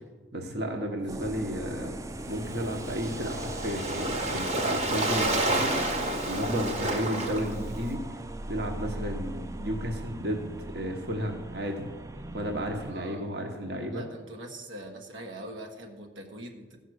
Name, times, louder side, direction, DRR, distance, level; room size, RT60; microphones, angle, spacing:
voice 1, 0.3-1.9 2.3-5.7 6.2-8.0 8.5-10.5 10.7-11.9 12.3-14.0, equal, 60° right, 2 dB, 1.2 m, -32 dB
sound 1, 1.1-12.9, right 1 dB, 15° right, 0.3 m, -39 dB
Waves surf, 2.2-7.9, right 1 dB, 35° right, 1.1 m, -30 dB
voice 2, 12.9-13.2 13.9-16.8, right 1 dB, 85° right, 3 dB, 1.4 m, -43 dB
15.0 x 5.5 x 6.3 m, 1.3 s
head